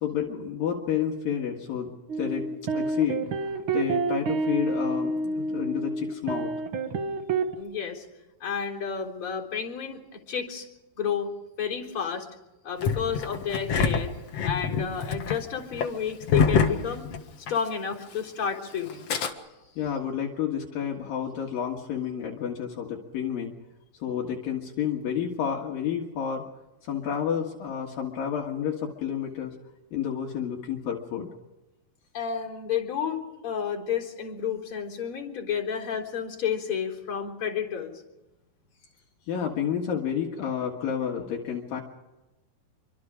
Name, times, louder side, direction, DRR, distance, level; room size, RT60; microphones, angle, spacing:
voice 1, 0.0-6.5 19.8-23.5 24.0-26.5 26.8-29.6 29.9-31.3 39.3-41.8, left 8 dB, 70° left, 0 dB, 3.4 m, -30 dB
sound 1, 2.1-7.5, right 3 dB, 55° right, 1.5 m, -28 dB
voice 2, 7.6-8.1 8.4-10.7 11.0-11.3 11.6-12.3 12.6-14.2 14.4-17.1 17.5-19.1 32.1-38.0, left 7 dB, 35° left, -1 dB, 4.3 m, -31 dB
Engine starting, 12.8-17.7 17.9-18.0 18.9-19.3, left 5 dB, 50° left, 2.3 m, -26 dB
26.5 x 24.5 x 5.0 m, 1.0 s
omnidirectional pair, 4.4 m